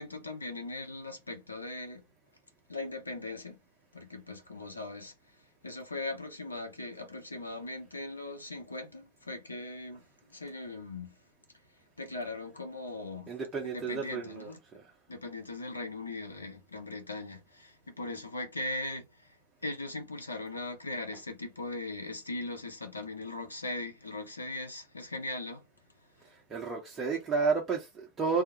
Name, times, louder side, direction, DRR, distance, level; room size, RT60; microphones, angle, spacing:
voice 1, 0.0-2.0 2.7-3.6 3.9-5.1 5.6-10.0 10.3-11.2 12.0-13.3 13.6-14.6 15.1-19.3 19.6-25.6, left 2 dB, 80° left, 0.5 m, -39 dB
voice 2, 13.3-14.8 26.3-28.4, right 5 dB, 20° right, 0.7 m, -32 dB
2.3 x 2.0 x 2.8 m
figure-of-eight pair, 90°, 0 cm